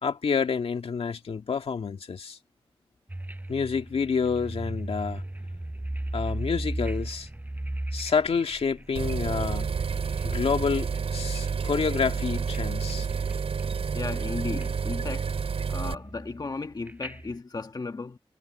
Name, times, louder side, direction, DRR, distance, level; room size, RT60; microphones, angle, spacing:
voice 1, 0.0-2.4 3.5-5.2 6.1-7.3 7.9-9.7 10.2-13.1, left 5 dB, 75° left, 2.2 m, -28 dB
sound 1, 3.1-10.5 10.9-12.0 12.4-12.6 12.9-13.8 14.1-14.7 15.0-17.4, right 1 dB, 15° right, 7.6 m, -36 dB
sound 2, 8.9-15.9, right 5 dB, 75° right, 4.7 m, -29 dB
voice 2, 13.9-15.4 15.7-18.2, left 3 dB, 40° left, 1.6 m, -35 dB
cardioid pair, 65°, 10 cm